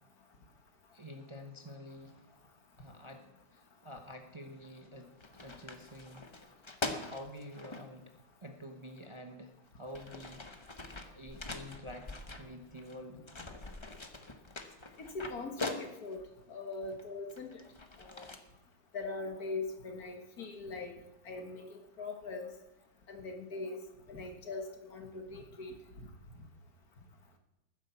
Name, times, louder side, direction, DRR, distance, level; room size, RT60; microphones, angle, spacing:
voice 1, 0.9-2.4 2.8-6.3 6.9-8.1 8.4-10.4 11.1-12.1 12.4-13.2, equal, 20° right, 4 dB, 0.8 m, -48 dB
sound 1, 4.6-4.9 5.2-7.8 9.0-9.1 9.7-13.0 13.3-16.3 16.9-18.4, left 2 dB, 20° left, 0.8 m, -43 dB
voice 2, 15.1-16.2 16.5-17.6 18.0-18.3 18.9-21.0 21.3-22.5 23.1-23.8 24.1-25.8, left 3 dB, 60° left, 4 dB, 1.9 m, -41 dB
11.5 x 10.0 x 7.0 m, 0.96 s
omnidirectional pair, 1.8 m